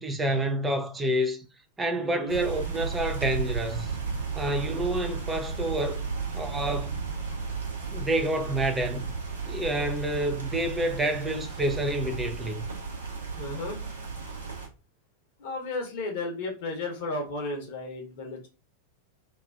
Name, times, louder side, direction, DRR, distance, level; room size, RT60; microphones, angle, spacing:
voice 1, 0.0-1.5 1.8-3.9 4.4-6.1 6.3-7.0 7.9-9.1 9.5-12.7, right 1 dB, 15° right, 0.4 m, -28 dB
voice 2, 2.0-2.4 13.4-13.8 15.4-18.5, left 2 dB, 50° left, 0.8 m, -34 dB
sound 1, 2.3-14.7, right 5 dB, 65° right, 0.7 m, -34 dB
2.4 x 2.4 x 2.2 m
figure-of-eight pair, 90°, 0 cm